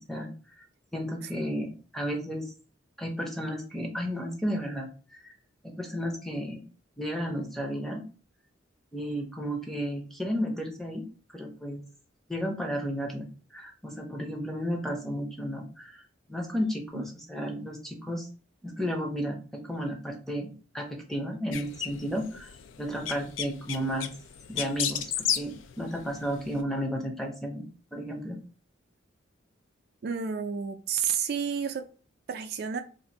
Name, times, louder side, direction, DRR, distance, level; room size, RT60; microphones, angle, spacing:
voice 1, 0.9-2.5 3.0-5.3 5.6-6.6 7.0-8.0 8.9-11.1 11.3-11.8 12.3-13.3 13.5-16.0 16.3-18.3 18.6-22.5 22.8-24.1 24.5-27.7 27.9-28.4, equal, ahead, 0.6 m, -33 dB
sound 1, 21.5-26.6, left 9 dB, 75° left, 0.4 m, -34 dB
voice 2, 30.0-31.9 32.3-32.8, right 7 dB, 50° right, 0.3 m, -30 dB
2.6 x 2.5 x 3.9 m
head